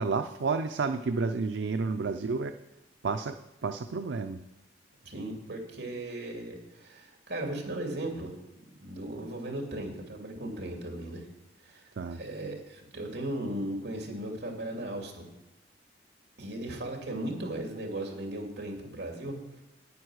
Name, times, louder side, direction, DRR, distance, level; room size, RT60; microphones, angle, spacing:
voice 1, 0.0-2.5 3.0-3.3 3.6-4.4 12.0-12.2, right 4 dB, 80° right, 7 dB, 0.5 m, -30 dB
voice 2, 5.0-8.3 8.8-11.3 11.6-11.8 12.1-15.3 16.4-19.4, right 1 dB, 65° right, 2 dB, 2.7 m, -37 dB
9.5 x 9.2 x 6.3 m, 0.95 s
head